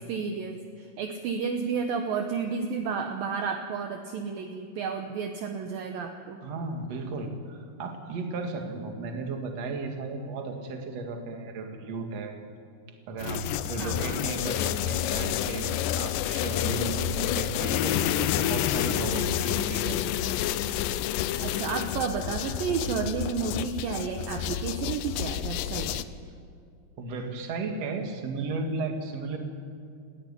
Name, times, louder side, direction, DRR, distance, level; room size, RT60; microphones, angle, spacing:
voice 1, 0.1-6.4 8.6-8.8 13.8-14.2 21.4-26.1, right 6 dB, 70° right, 4 dB, 2.6 m, -32 dB
voice 2, 6.4-12.3 13.1-20.1 27.0-29.4, right 3 dB, 45° right, 3 dB, 2.8 m, -34 dB
sound 1, 13.2-26.0, left 12 dB, 90° left, 1.9 m, -29 dB
19.0 x 16.0 x 10.0 m, 2.4 s
omnidirectional pair, 4.7 m